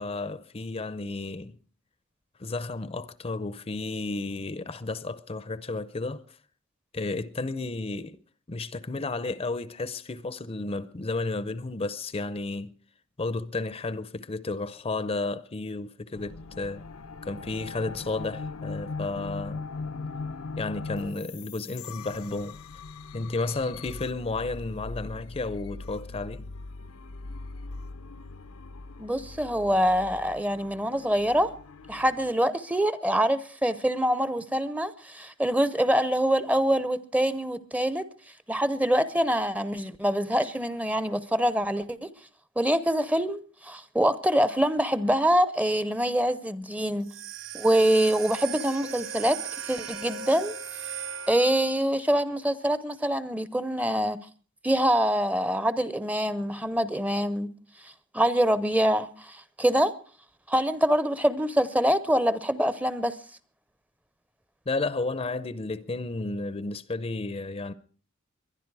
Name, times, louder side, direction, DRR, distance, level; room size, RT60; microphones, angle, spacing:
voice 1, 0.0-1.6 2.4-6.2 6.9-8.2 8.5-12.7 13.2-16.8 17.2-19.6 20.6-22.6 23.1-26.5 64.7-67.7, left 3 dB, 30° left, 0.6 m, -32 dB
sound 1, 16.1-32.3, left 3 dB, 80° left, 0.8 m, -40 dB
voice 2, 29.0-31.5 31.9-38.1 38.5-42.1 42.6-47.1 47.5-49.4 49.7-50.6 51.3-54.3 54.6-57.5 58.1-59.9 60.5-63.2, equal, 5° right, 0.7 m, -25 dB
sound 2, 47.0-51.8, right 7 dB, 65° right, 4.1 m, -38 dB
22.5 x 11.0 x 4.8 m
head